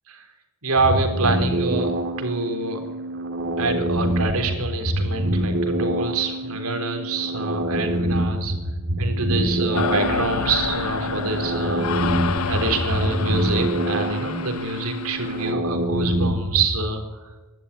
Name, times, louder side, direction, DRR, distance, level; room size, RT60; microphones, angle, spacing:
voice 1, 0.6-1.9 2.2-2.8 3.6-8.5 9.0-11.9 12.5-17.3, right 3 dB, 80° right, 5 dB, 3.8 m, -26 dB
sound 1, 0.8-16.8, right 1 dB, 55° right, 2.2 m, -26 dB
sound 2, 9.7-15.5, left 4 dB, 75° left, 1.0 m, -29 dB
24.5 x 12.0 x 9.9 m, 1.2 s
head